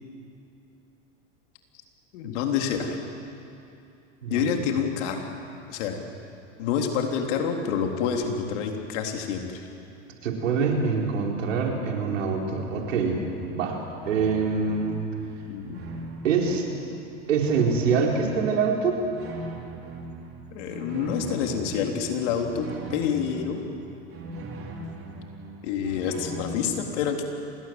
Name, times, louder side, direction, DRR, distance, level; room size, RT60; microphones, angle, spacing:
voice 1, 2.1-3.0 4.3-5.3 5.7-6.0 6.6-9.7 15.5-15.8 20.5-23.6 25.6-27.3, left 7 dB, 70° left, 3 dB, 3.6 m, -28 dB
voice 2, 10.2-13.2 13.5-13.8 14.0-15.0 16.2-16.7 17.3-19.0, right 5 dB, 90° right, 0 dB, 4.4 m, -24 dB
sound 1, 12.7-26.4, right 2 dB, 35° right, 4.0 m, -41 dB
27.5 x 21.0 x 7.8 m, 2.7 s
hypercardioid pair, 105°, 37 cm